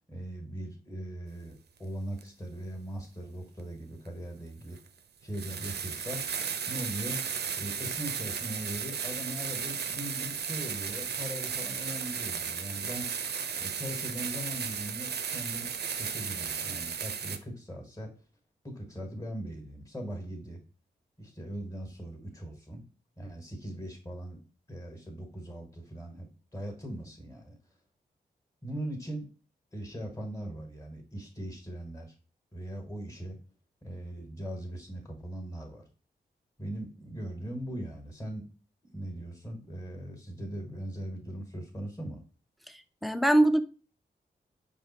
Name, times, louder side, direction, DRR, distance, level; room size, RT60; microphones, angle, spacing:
voice 1, 0.1-4.8 5.2-6.2 6.7-7.2 7.5-13.1 13.6-15.7 15.9-18.1 18.6-20.6 21.2-22.8 23.2-24.4 24.7-27.6 28.6-29.3 29.7-32.1 32.5-33.4 33.8-35.8 36.6-38.4 38.8-42.2, right 1 dB, 15° left, 1.3 m, -40 dB
sound 1, 2.2-2.3 4.1-4.2 4.8-4.9 5.3-17.4, right 7 dB, 65° right, 0.5 m, -35 dB
voice 2, 42.7-43.6, right 1 dB, ahead, 0.4 m, -24 dB
4.9 x 2.5 x 4.0 m
cardioid pair, 45°, 18 cm